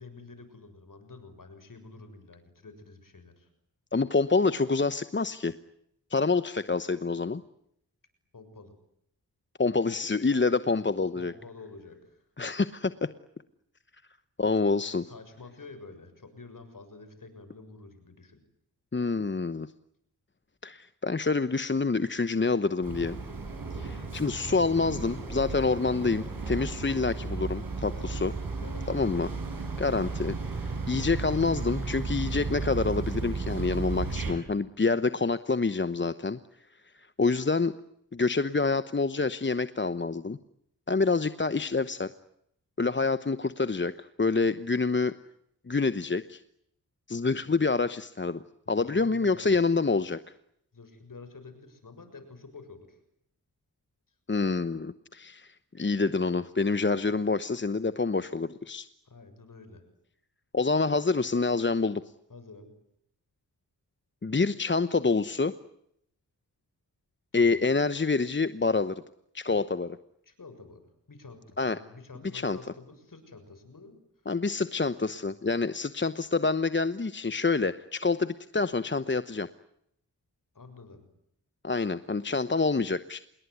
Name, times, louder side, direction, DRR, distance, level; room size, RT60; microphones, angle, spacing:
voice 1, 0.0-3.5 8.3-8.7 11.2-12.2 15.1-18.4 27.9-28.2 28.6-28.9 48.7-49.6 50.7-53.0 59.1-59.8 62.3-62.7 67.3-67.6 70.3-74.0 80.6-81.1, left 3 dB, 55° left, 10 dB, 6.9 m, -48 dB
voice 2, 3.9-5.5 6.1-7.4 9.6-11.3 12.4-13.1 14.4-15.1 18.9-19.7 20.6-23.2 23.7-28.3 28.9-29.3 29.8-30.3 30.6-36.4 36.9-37.7 38.1-40.4 40.9-42.1 42.8-45.1 45.7-46.4 47.1-48.4 48.7-50.2 54.3-58.9 60.5-62.0 64.2-65.5 67.3-69.0 69.3-70.0 71.6-71.8 72.3-72.6 74.3-79.5 81.6-83.2, left 4 dB, 30° left, 13 dB, 1.0 m, -27 dB
sound 1, 22.8-34.3, right 3 dB, 60° right, 7.2 m, -34 dB
27.5 x 21.5 x 9.6 m, 0.74 s
wide cardioid pair, 75°, 39 cm